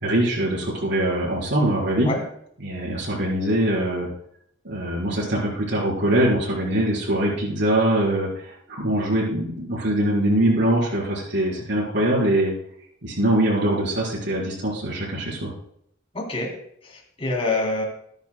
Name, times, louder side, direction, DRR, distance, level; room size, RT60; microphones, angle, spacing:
voice 1, 0.0-2.1 2.6-4.1 4.6-12.5 13.0-15.5, right 1 dB, 60° right, -4 dB, 4.7 m, -23 dB
voice 2, 16.1-16.5 16.8-17.8, left 2 dB, 30° left, 0 dB, 3.4 m, -26 dB
22.0 x 10.5 x 2.3 m, 0.70 s
head